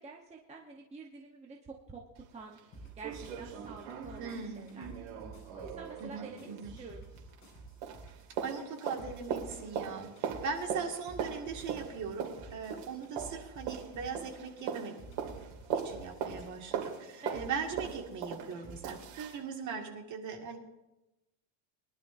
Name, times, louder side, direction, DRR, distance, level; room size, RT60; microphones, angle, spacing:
voice 1, 0.0-2.0 2.3-2.6 3.0-4.9 5.5-7.0 9.6-10.1 17.2-17.4, right 3 dB, 15° right, -1 dB, 1.0 m, -48 dB
sound 1, 2.2-2.3 2.6-2.7 3.0-7.6 7.8-19.4 19.8-19.9, right 7 dB, 85° right, 2.7 m, -40 dB
sound 2, 2.7-19.4, right 3 dB, 35° left, 5.4 m, -52 dB
voice 2, 4.2-4.9 6.0-6.8 8.4-14.9 15.8-20.6, right 5 dB, 40° right, 2 dB, 2.1 m, -40 dB
22.5 x 11.5 x 2.6 m, 0.97 s
cardioid pair, 160°, 47 cm